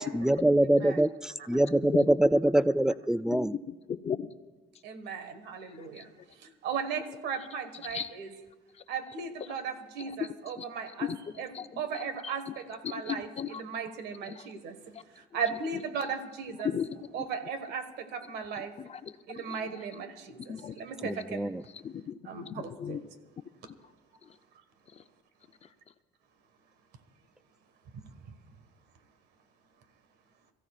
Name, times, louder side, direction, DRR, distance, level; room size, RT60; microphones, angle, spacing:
voice 1, 0.0-3.5 21.0-21.6, right 1 dB, 5° right, 15 dB, 0.3 m, -25 dB
voice 2, 3.7-4.3 5.6-6.0 7.9-8.1 8.7-8.8 9.5-9.6 10.0-12.6 12.8-13.6 14.2-14.5 14.9-15.0 15.7-15.8 16.6-17.3 18.6-19.9 20.5-20.8 21.0-21.1 21.7-23.0 23.7-23.8 24.2-24.4 24.9-25.0 25.6-25.7, left 7 dB, 40° left, 10 dB, 0.7 m, -38 dB
voice 3, 4.8-8.3 8.9-11.1 11.4-11.5 11.8-13.3 13.6-16.7 17.1-18.7 19.3-21.5 22.2-23.0 27.9-28.3, right 6 dB, 75° right, 8 dB, 1.7 m, -37 dB
27.5 x 15.0 x 2.5 m, 1.2 s
cardioid pair, 110°, 17 cm